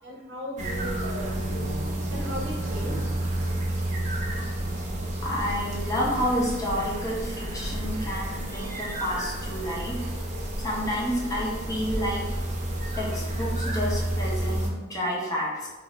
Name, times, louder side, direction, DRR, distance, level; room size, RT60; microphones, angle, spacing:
voice 1, 0.0-1.7 2.1-3.1, equal, 70° right, -3 dB, 0.7 m, -37 dB
sound 1, 0.6-10.3, right 1 dB, 65° left, 0.8 m, -41 dB
sound 2, 0.6-14.7, right 1 dB, 40° right, 0.4 m, -31 dB
voice 2, 5.2-10.1 10.6-12.2 13.0-15.7, equal, 20° left, -5 dB, 0.6 m, -30 dB
2.4 x 2.1 x 3.7 m, 1.2 s
head